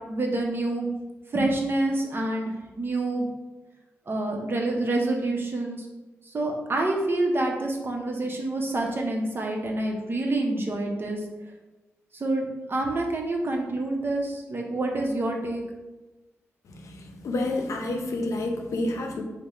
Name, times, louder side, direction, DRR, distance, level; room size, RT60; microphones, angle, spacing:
voice 1, 0.1-0.9 1.3-3.3 4.1-5.9 6.3-11.2 12.1-15.6, right 2 dB, 45° right, 1 dB, 0.7 m, -27 dB
voice 2, 16.7-19.2, left 2 dB, 75° left, 2 dB, 0.6 m, -29 dB
3.5 x 2.1 x 4.1 m, 1.1 s
cardioid pair, 60°, 5 cm